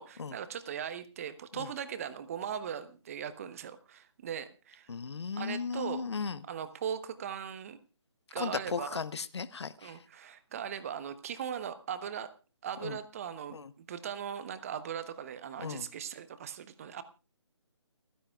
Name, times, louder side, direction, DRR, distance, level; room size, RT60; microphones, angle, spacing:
voice 1, 0.0-4.9 5.4-6.0 6.5-7.8 8.3-9.0 9.8-12.3 12.6-17.0, right 8 dB, 30° right, 13 dB, 1.0 m, -39 dB
voice 2, 4.9-6.4 8.4-10.0 12.8-13.0 13.5-13.7 15.6-15.9, left 5 dB, 60° left, 16 dB, 0.9 m, -36 dB
29.5 x 9.9 x 2.4 m, 0.33 s
figure-of-eight pair, 150°, 16 cm